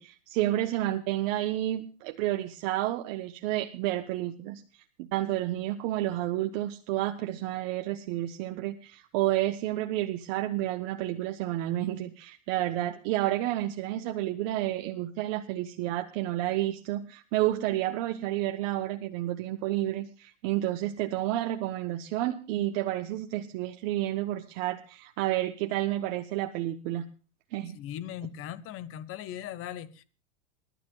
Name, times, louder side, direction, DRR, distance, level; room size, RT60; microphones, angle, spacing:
voice 1, 0.0-4.6 5.0-27.1 27.5-27.8, right 14 dB, 50° right, 1.2 m, -30 dB
voice 2, 27.7-30.0, left 11 dB, 35° left, 1.3 m, -39 dB
28.0 x 12.5 x 2.4 m
hypercardioid pair, 125°, 37 cm